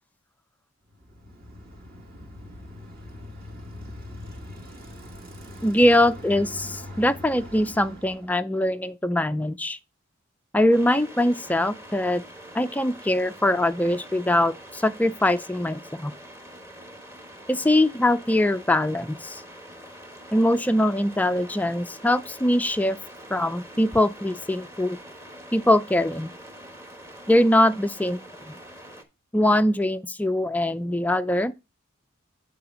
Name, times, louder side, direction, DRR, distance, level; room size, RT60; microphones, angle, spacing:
Bicycle, 0.9-8.4, left 1 dB, 50° right, 2.5 m, -42 dB
voice 1, 5.6-9.8 10.5-12.2 12.5-16.1 17.5-19.4 20.3-23.0 23.3-25.0 25.5-26.3 27.3-28.2 28.5-28.6 29.3-31.6, left 1 dB, 10° left, 0.3 m, -22 dB
sound 1, 10.7-29.0, equal, 15° right, 1.0 m, -44 dB
9.6 x 4.0 x 5.0 m
head